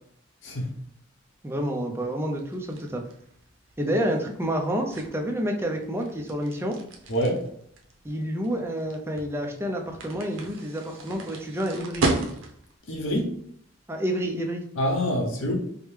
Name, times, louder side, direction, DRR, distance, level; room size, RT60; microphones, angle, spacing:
voice 1, 0.4-0.7 7.1-7.4 12.9-13.3 14.8-15.5, equal, 80° left, -1 dB, 0.8 m, -26 dB
voice 2, 1.4-3.0 3.8-6.8 8.0-12.1 13.9-14.6, equal, 10° right, 2 dB, 0.4 m, -29 dB
sound 1, 2.4-12.8, right 2 dB, 85° right, 0.6 m, -35 dB
4.9 x 2.1 x 3.2 m, 0.66 s
head